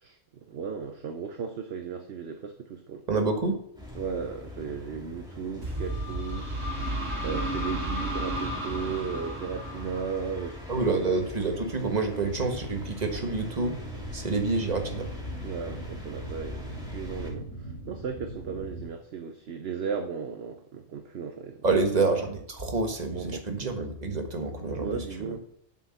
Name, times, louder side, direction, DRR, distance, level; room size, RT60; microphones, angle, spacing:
voice 1, 0.0-3.0 3.9-6.7 7.2-10.6 10.9-11.1 15.4-21.7 21.9-22.0 23.1-23.5 24.8-25.4, right 6 dB, 55° right, 5 dB, 1.0 m, -36 dB
voice 2, 3.1-3.6 10.7-13.7 14.1-15.1 21.6-25.0, right 3 dB, 30° right, 4 dB, 1.4 m, -27 dB
sound 1, 3.7-17.3, left 1 dB, 5° right, 2.9 m, -43 dB
sound 2, 5.6-11.3, right 1 dB, 70° right, 2.5 m, -33 dB
sound 3, 12.3-18.8, right 2 dB, 20° left, 2.6 m, -40 dB
7.8 x 6.4 x 6.9 m, 0.67 s
omnidirectional pair, 1.4 m